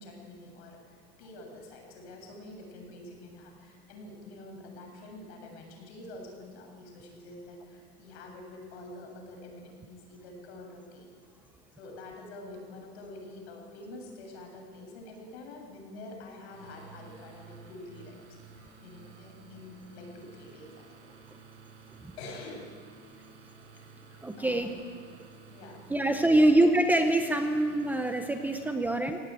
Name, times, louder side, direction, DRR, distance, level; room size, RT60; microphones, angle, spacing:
voice 1, 0.0-11.1 11.8-21.1 22.2-22.7 23.7-23.8 24.4-24.8 25.5-25.9 26.2-26.4, left 2 dB, 70° left, 2 dB, 7.6 m, -47 dB
sound 1, 16.5-28.7, right 5 dB, 90° right, 7.7 m, -53 dB
voice 2, 24.2-24.8 25.9-29.2, right 1 dB, 5° right, 6 dB, 0.7 m, -24 dB
22.5 x 18.0 x 9.2 m, 2.1 s
supercardioid pair, 170°, 33 cm